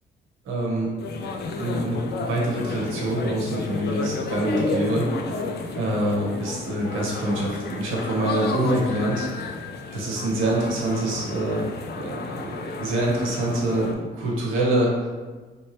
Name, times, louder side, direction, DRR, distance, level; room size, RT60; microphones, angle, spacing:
voice 1, 0.4-0.9 1.6-5.1 5.7-9.3 9.9-11.7 12.0-15.1, right 1 dB, 90° right, -3 dB, 1.0 m, -25 dB
sound 1, 1.0-13.9, left 4 dB, 55° left, 0.4 m, -33 dB
Laughter, 2.5-6.1, left 1 dB, 30° left, 1.2 m, -31 dB
3.2 x 2.9 x 3.0 m, 1.3 s
cardioid pair, 90°, 20 cm